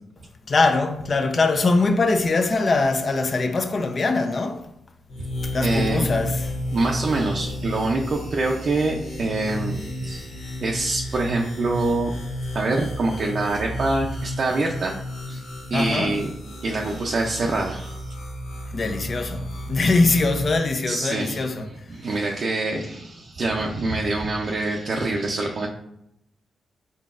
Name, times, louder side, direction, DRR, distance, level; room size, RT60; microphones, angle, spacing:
voice 1, 0.5-4.6 5.4-6.4 15.7-16.2 18.7-21.7, left 3 dB, 45° left, 0.6 m, -22 dB
sound 1, 5.1-20.5, left 1 dB, 80° left, 1.1 m, -32 dB
voice 2, 5.6-6.2 6.7-12.2 12.5-14.9 15.3-15.4 15.7-16.3 16.6-18.1 20.9-21.5 21.9-25.7, right 2 dB, 55° right, 0.5 m, -25 dB
4.0 x 3.7 x 2.5 m
supercardioid pair, 45°, 0 cm